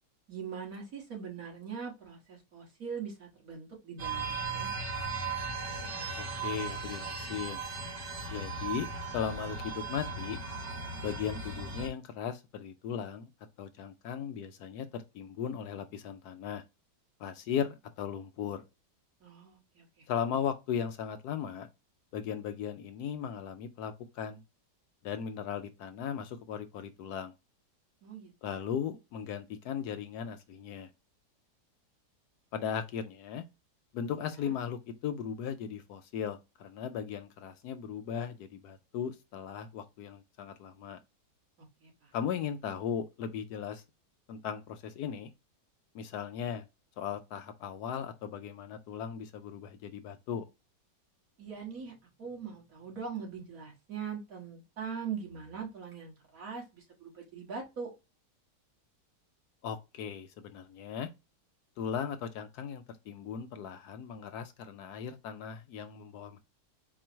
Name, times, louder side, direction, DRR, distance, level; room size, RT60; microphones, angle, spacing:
voice 1, 0.3-4.7 19.2-20.1 28.0-28.6 34.1-34.5 41.8-42.1 51.4-57.9, right 6 dB, 55° right, 1.9 m, -42 dB
sound 1, 4.0-11.9, right 4 dB, 75° right, 2.1 m, -37 dB
voice 2, 6.2-7.6 8.3-8.9 9.1-10.4 11.0-13.3 13.6-16.6 17.2-18.6 20.1-21.7 22.1-24.4 25.0-27.3 28.4-30.9 32.5-33.4 33.9-41.0 42.1-43.8 44.3-45.3 45.9-46.6 47.0-50.4 59.6-61.1 61.8-66.4, left 8 dB, 75° left, 1.0 m, -37 dB
4.5 x 2.2 x 4.4 m
omnidirectional pair, 1.9 m